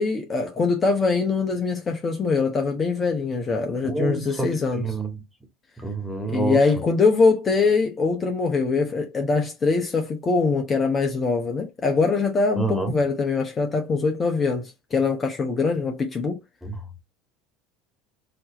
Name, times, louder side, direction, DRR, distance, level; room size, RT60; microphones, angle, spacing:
voice 1, 0.0-5.0 6.3-16.4, left 4 dB, 30° left, 1.0 m, -23 dB
voice 2, 3.8-5.2 5.8-6.6 12.6-13.0 16.6-16.7, right 3 dB, ahead, 1.8 m, -28 dB
4.4 x 2.8 x 2.9 m
hypercardioid pair, 75°, 0 cm